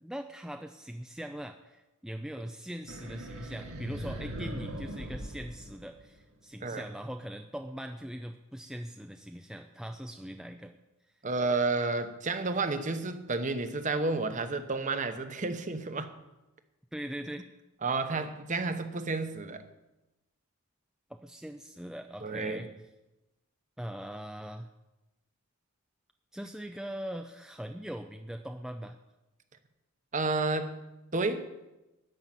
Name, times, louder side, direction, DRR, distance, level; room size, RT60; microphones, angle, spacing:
voice 1, 0.0-10.8 16.9-17.5 21.1-22.7 23.8-24.7 26.3-29.0, equal, ahead, 5 dB, 0.4 m, -41 dB
sound 1, 2.9-6.3, equal, 80° right, 2.1 m, -40 dB
voice 2, 11.2-16.1 17.8-19.6 22.2-22.7 30.1-30.8 31.1-31.5, right 3 dB, 35° right, 9 dB, 0.9 m, -31 dB
13.0 x 5.6 x 9.3 m, 1.0 s
head